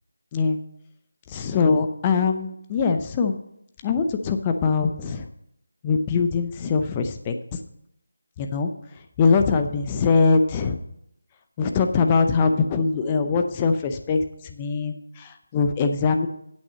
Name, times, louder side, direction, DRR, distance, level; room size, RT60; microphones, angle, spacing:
voice 1, 0.3-0.6 1.3-3.4 3.8-5.3 5.8-7.6 8.4-10.8 11.6-16.3, left 4 dB, 20° left, 6 dB, 0.6 m, -22 dB
8.4 x 6.0 x 7.4 m, 0.77 s
figure-of-eight pair, 165°, 0 cm